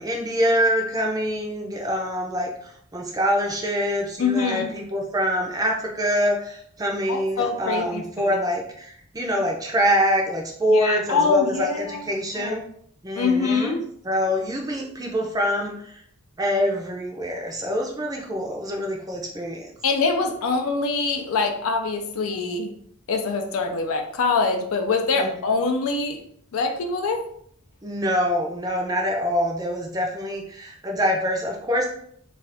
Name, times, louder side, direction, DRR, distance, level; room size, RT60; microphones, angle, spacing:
voice 1, 0.0-12.6 13.0-13.8 14.0-16.0 16.4-19.7 25.2-25.4 27.8-31.9, equal, 15° right, 0 dB, 0.4 m, -25 dB
voice 2, 4.2-4.7 7.1-8.4 10.7-12.0 12.4-12.5 13.2-13.8 19.8-22.7 23.1-26.2 26.5-27.2, left 4 dB, 80° left, 4 dB, 0.5 m, -24 dB
2.5 x 2.4 x 3.4 m, 0.64 s
head